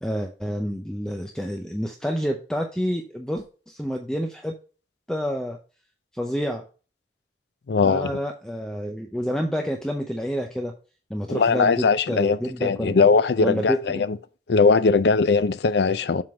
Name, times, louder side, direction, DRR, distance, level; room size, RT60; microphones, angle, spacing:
voice 1, 0.0-4.5 5.1-5.6 6.1-6.6 7.8-10.7 11.1-13.0 13.4-14.0, equal, 5° left, 0.5 m, -28 dB
voice 2, 7.7-8.1 11.3-14.2 14.5-16.2, left 4 dB, 70° left, 0.5 m, -20 dB
7.6 x 3.8 x 5.0 m
head